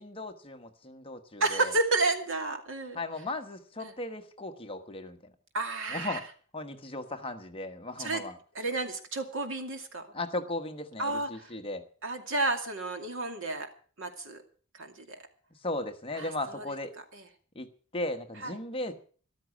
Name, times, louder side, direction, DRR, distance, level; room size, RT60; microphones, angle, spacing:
voice 1, 0.0-1.7 2.9-5.3 5.9-6.2 6.5-8.4 10.1-11.8 15.6-16.9 17.5-17.7 17.9-18.9, left 2 dB, 25° left, 6 dB, 1.3 m, -36 dB
voice 2, 1.4-3.0 3.8-3.9 5.5-6.2 8.0-8.2 8.6-10.1 11.0-11.5 12.0-13.7 14.0-14.4 14.8-15.2 16.2-16.3 17.1-17.2 18.4-18.5, right 2 dB, 65° right, 6 dB, 2.5 m, -31 dB
13.5 x 12.5 x 6.2 m, 0.43 s
head